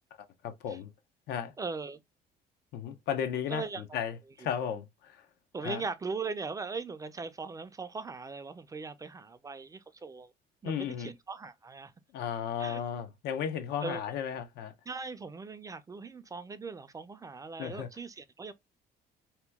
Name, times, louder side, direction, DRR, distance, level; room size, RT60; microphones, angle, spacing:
voice 1, 0.4-0.9 1.3-1.5 2.7-5.2 5.6-5.8 10.6-11.1 12.1-14.7 17.6-17.9, left 8 dB, 75° left, 0.6 m, -34 dB
voice 2, 1.6-2.0 3.5-4.0 4.4-4.5 5.5-10.3 10.6-11.9 12.6-12.8 13.8-14.0 14.9-18.5, right 4 dB, 20° right, 0.4 m, -39 dB
2.9 x 2.2 x 3.4 m
cardioid pair, 110°, 17 cm